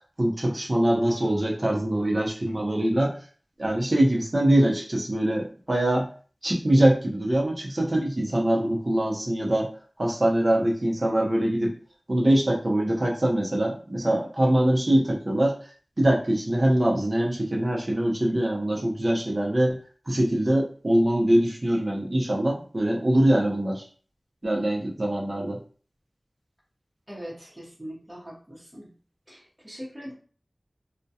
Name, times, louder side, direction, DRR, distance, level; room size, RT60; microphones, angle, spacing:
voice 1, 0.2-3.1 3.6-6.1 6.4-9.7 10.0-11.7 12.1-15.5 16.0-19.8 20.1-23.8 24.4-25.6, right 1 dB, 45° right, -1 dB, 0.7 m, -23 dB
voice 2, 27.1-28.9 29.3-30.1, equal, 15° right, -5 dB, 0.8 m, -41 dB
2.3 x 2.2 x 2.7 m, 0.41 s
wide cardioid pair, 60°, 0 cm